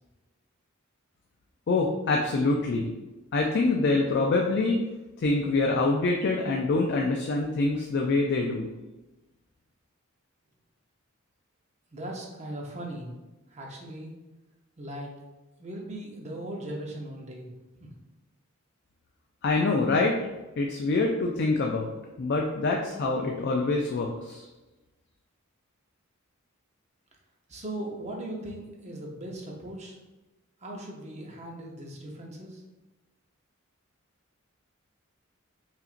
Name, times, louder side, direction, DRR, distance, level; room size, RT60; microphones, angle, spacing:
voice 1, 1.7-2.9 3.3-4.8 5.2-8.7 19.4-20.2 20.6-21.9 22.2-24.5, left 3 dB, 50° left, 1 dB, 0.4 m, -25 dB
voice 2, 11.9-13.1 13.5-14.1 14.8-15.1 15.6-17.5 17.8-17.9 27.5-30.0 30.6-32.6, right 1 dB, 30° right, -1 dB, 0.7 m, -38 dB
5.7 x 2.5 x 2.5 m, 1.1 s
head